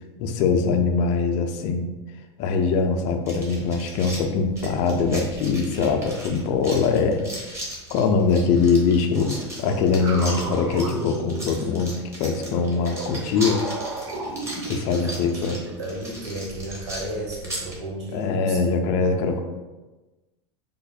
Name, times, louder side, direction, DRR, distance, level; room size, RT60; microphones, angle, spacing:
voice 1, 0.2-1.9 2.4-7.2 7.9-9.3 9.6-13.6 14.6-15.6 18.1-19.4, left 5 dB, 55° left, 5 dB, 0.5 m, -22 dB
sound 1, 3.3-17.8, right 1 dB, 20° right, 1.2 m, -38 dB
voice 2, 6.9-7.3 15.0-18.6 19.1-19.4, right 2 dB, 90° right, -2 dB, 1.1 m, -34 dB
zarkovox gut, 9.1-11.9 12.5-15.2, right 2 dB, 70° right, 1.0 m, -34 dB
3.5 x 2.0 x 4.0 m, 1.2 s
hypercardioid pair, 105°, 14 cm